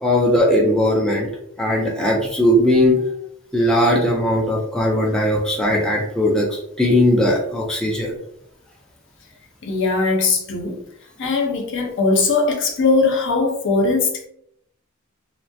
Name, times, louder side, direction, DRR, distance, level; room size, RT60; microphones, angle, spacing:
voice 1, 0.0-1.3 1.6-3.0 3.5-8.1, left 1 dB, 5° left, -3 dB, 0.3 m, -18 dB
voice 2, 9.6-10.8 11.2-14.3, left 3 dB, 60° left, 1 dB, 0.6 m, -20 dB
2.3 x 2.1 x 2.5 m, 0.72 s
head